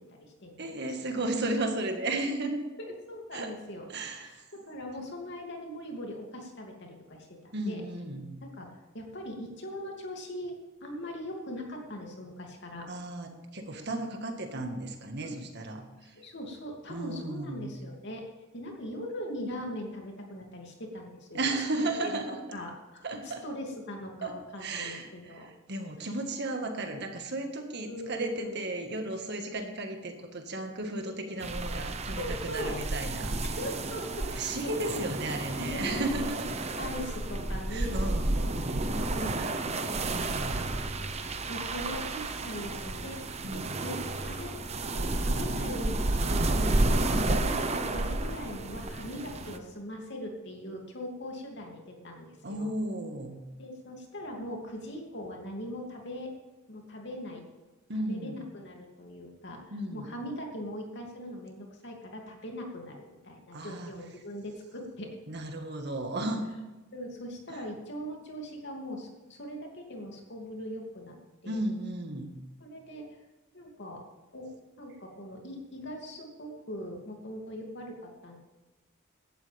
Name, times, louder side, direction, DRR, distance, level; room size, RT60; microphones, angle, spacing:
voice 1, 0.0-1.2 2.8-3.9 4.2-7.3 7.7-7.8 8.5-10.5 10.8-12.9 15.2-15.4 16.0-18.2 18.5-21.5 22.0-23.0 23.4-25.5 26.0-26.1 27.9-28.5 30.9-31.0 32.1-32.8 33.4-34.5 34.9-35.0 35.5-36.1 36.8-37.9 38.8-39.4 39.9-40.7 41.0-44.5 44.9-52.7 53.6-56.3 56.7-57.4 58.1-63.0 63.2-65.2 66.9-71.2 71.4-71.6 72.6-73.1 73.5-74.0 74.3-74.5 74.8-78.4, equal, 60° left, 1 dB, 2.7 m, -40 dB
voice 2, 0.6-2.6 3.3-3.5 3.9-4.4 7.5-8.3 12.9-16.3 16.9-17.7 21.3-22.4 23.0-23.4 24.2-33.4 34.3-36.9 37.7-38.9 39.3-39.6 40.1-40.7 43.4-43.8 47.2-47.5 52.4-53.4 57.9-58.4 59.7-60.1 63.5-63.9 65.3-66.5 67.5-67.6 71.5-72.4, right 2 dB, 55° right, 5 dB, 1.7 m, -34 dB
sound 1, 31.4-49.6, right 2 dB, 30° right, 0.9 m, -31 dB
17.0 x 12.0 x 3.5 m, 1.2 s
head